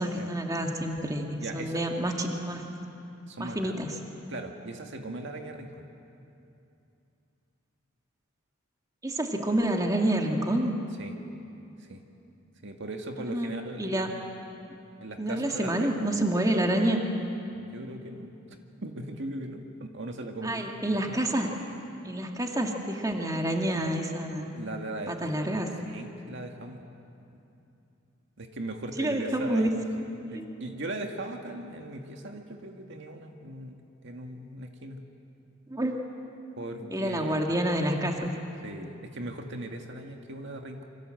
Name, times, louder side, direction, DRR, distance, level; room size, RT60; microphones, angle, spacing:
voice 1, 0.0-1.3 1.5-2.6 3.4-3.9 9.0-10.7 13.3-13.5 13.8-14.1 15.2-17.0 20.4-21.5 22.0-24.5 25.1-25.7 29.0-29.7 30.3-30.4 35.7-35.9 36.9-38.4, right 1 dB, 20° right, 2 dB, 2.1 m, -28 dB
voice 2, 1.4-1.8 3.3-3.8 4.3-5.9 11.0-11.1 11.8-12.0 12.6-14.0 15.0-15.9 17.5-18.3 18.8-20.7 21.0-21.2 24.5-25.4 25.8-26.8 28.4-29.7 30.0-35.0 36.6-37.5 38.6-40.9, right 1 dB, 60° right, 3 dB, 2.0 m, -39 dB
28.5 x 25.0 x 7.8 m, 2.7 s
head